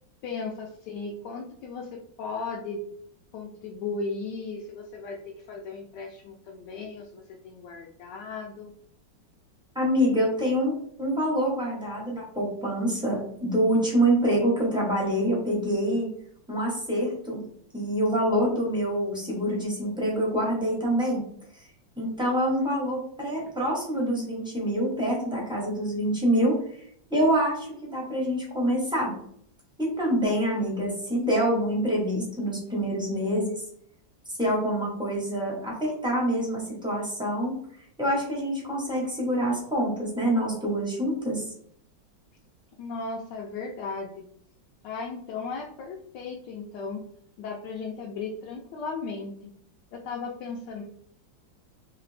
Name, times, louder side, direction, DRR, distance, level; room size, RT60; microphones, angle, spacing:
voice 1, 0.2-2.8 3.3-8.8 42.8-44.2 44.8-47.0 47.4-49.5 49.9-50.8, left 4 dB, 75° left, 0 dB, 1.1 m, -36 dB
voice 2, 9.7-10.7 11.0-16.1 16.5-17.4 17.7-21.2 22.0-26.5 27.1-29.1 29.8-33.6 34.4-37.5 38.0-41.5, equal, 5° right, -4 dB, 0.3 m, -26 dB
3.3 x 2.9 x 3.2 m, 0.65 s
omnidirectional pair, 2.1 m